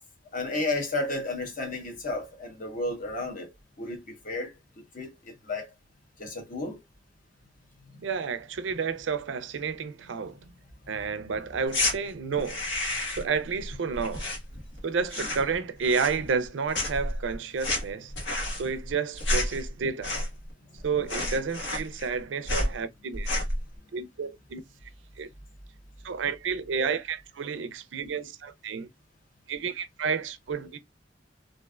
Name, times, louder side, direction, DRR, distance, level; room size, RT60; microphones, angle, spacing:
voice 1, 0.3-3.5 3.8-4.5 4.9-5.7 6.2-6.8 10.2-10.5, left 2 dB, 45° left, 1.1 m, -32 dB
voice 2, 8.0-10.4 10.9-12.6 13.1-14.3 14.8-18.1 18.6-20.2 20.8-23.3 23.9-24.6 25.2-25.3 26.0-28.9 29.5-30.8, right 5 dB, 80° right, 0.4 m, -30 dB
sound 1, 11.7-11.9 12.4-13.3 13.6-14.8 15.0-15.5 15.8-16.5 16.7-20.5 20.8-20.9 21.1-22.2 22.5-22.7 23.1-23.6, left 1 dB, 70° left, 1.3 m, -30 dB
3.2 x 2.5 x 2.4 m
head